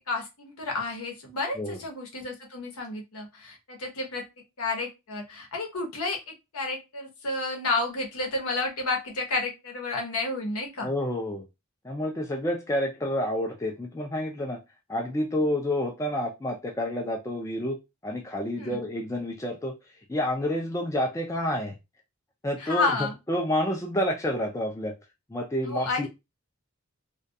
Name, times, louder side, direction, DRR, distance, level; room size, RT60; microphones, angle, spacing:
voice 1, 0.1-4.3 4.6-10.9 18.6-18.9 22.6-23.2 25.7-26.1, left 3 dB, 85° left, 1 dB, 0.8 m, -31 dB
voice 2, 10.8-11.4 11.8-14.6 14.9-17.8 18.0-19.8 20.1-21.7 22.4-22.9 23.3-24.9 25.3-26.1, left 1 dB, 15° left, 1 dB, 0.3 m, -29 dB
2.3 x 2.2 x 2.6 m, 0.24 s
head